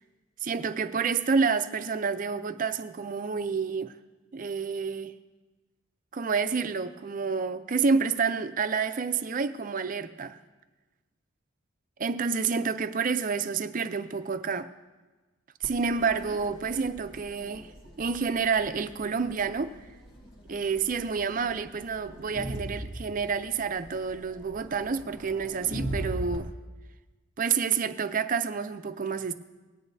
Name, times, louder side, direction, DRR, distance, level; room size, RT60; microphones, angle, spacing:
voice 1, 0.4-3.9 4.3-5.1 6.1-10.4 12.0-14.7 15.6-17.7 18.0-19.7 20.5-26.5 27.4-29.3, right 5 dB, 40° right, 0.5 m, -29 dB
Crowd, 15.6-26.4, right 1 dB, 65° left, 1.5 m, -41 dB
18.5 x 9.8 x 2.7 m
head